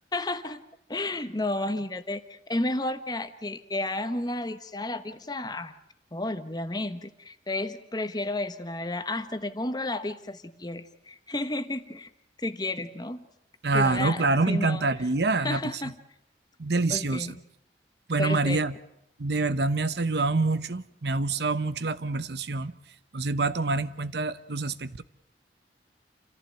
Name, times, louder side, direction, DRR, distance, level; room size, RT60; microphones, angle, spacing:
voice 1, 0.1-0.6 0.9-5.7 6.1-12.1 12.4-13.3 13.7-15.1 15.4-15.9 16.9-17.4 18.2-18.6, left 2 dB, 25° left, 1.1 m, -32 dB
voice 2, 13.6-15.9 16.6-17.3 18.1-18.7 19.2-22.7 23.1-25.0, right 3 dB, 75° right, 0.9 m, -26 dB
28.0 x 15.0 x 9.0 m
head